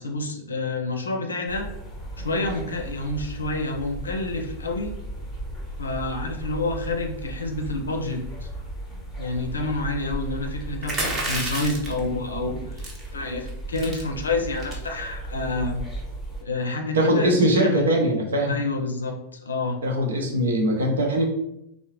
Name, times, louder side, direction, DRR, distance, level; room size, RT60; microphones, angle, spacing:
voice 1, 0.0-1.7 2.2-4.9 5.8-8.5 9.2-12.6 13.1-15.8 16.4-17.8 18.4-19.8, left 2 dB, 75° left, 3 dB, 0.5 m, -28 dB
sound 1, 1.5-16.4, right 1 dB, 10° left, 0.9 m, -36 dB
sound 2, 10.8-12.0 12.8-13.1 13.5-13.6 13.8-14.0 14.6-14.9, right 1 dB, 25° right, 0.8 m, -29 dB
voice 2, 16.9-18.6 19.8-21.3, right 1 dB, 65° right, 1 dB, 0.7 m, -21 dB
3.6 x 2.0 x 2.9 m, 0.80 s
figure-of-eight pair, 90°, 0 cm